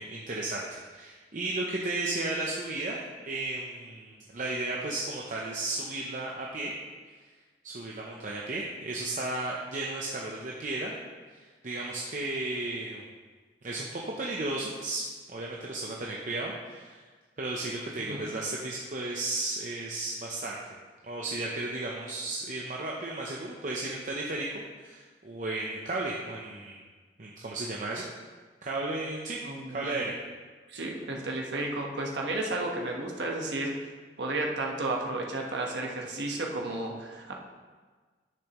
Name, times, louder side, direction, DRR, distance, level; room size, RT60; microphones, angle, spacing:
voice 1, 0.0-6.7 7.6-10.9 11.3-13.0 13.6-15.0 15.3-17.1 17.4-20.6 21.0-26.8 27.2-28.1 28.6-29.4 29.7-30.1, right 2 dB, 45° right, -2 dB, 0.8 m, -34 dB
voice 2, 29.4-30.1 30.7-33.9 34.2-37.3, right 2 dB, 80° right, 0 dB, 1.2 m, -33 dB
10.0 x 6.8 x 3.1 m, 1.4 s
head